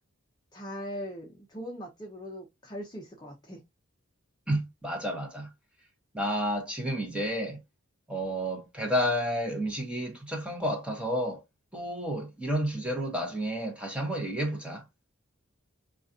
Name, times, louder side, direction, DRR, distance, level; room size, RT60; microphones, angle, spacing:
voice 1, 0.5-3.6, equal, 20° left, 0.6 m, -40 dB
voice 2, 4.5-5.5 6.1-7.6 8.1-11.4 11.7-14.8, equal, 5° right, 0.9 m, -31 dB
3.8 x 2.4 x 2.7 m
head